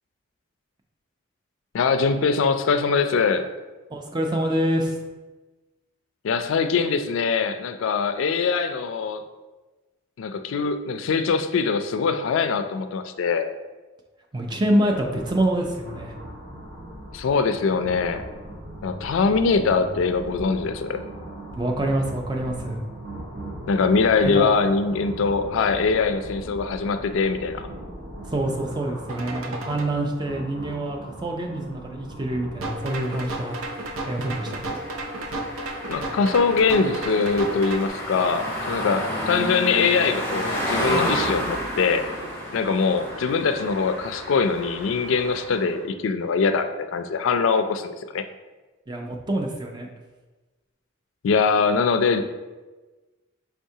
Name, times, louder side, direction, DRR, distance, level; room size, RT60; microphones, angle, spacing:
voice 1, 1.7-3.5 6.2-9.2 10.2-13.5 17.1-18.2 18.8-21.0 23.7-27.7 35.9-42.0 42.5-48.2 51.2-52.2, left 5 dB, 75° left, 9 dB, 0.3 m, -22 dB
voice 2, 3.9-5.0 14.3-16.2 21.5-22.8 24.3-24.5 28.2-33.6 34.0-34.8 48.9-49.9, right 1 dB, 20° right, 2 dB, 0.4 m, -26 dB
sound 1, 14.8-32.8, right 1 dB, 50° right, 0.9 m, -39 dB
sound 2, 29.1-29.9 32.6-37.9, right 1 dB, 85° right, 0.6 m, -33 dB
sound 3, 32.8-45.8, equal, 10° left, 0.7 m, -31 dB
4.6 x 3.5 x 2.7 m, 1.2 s
head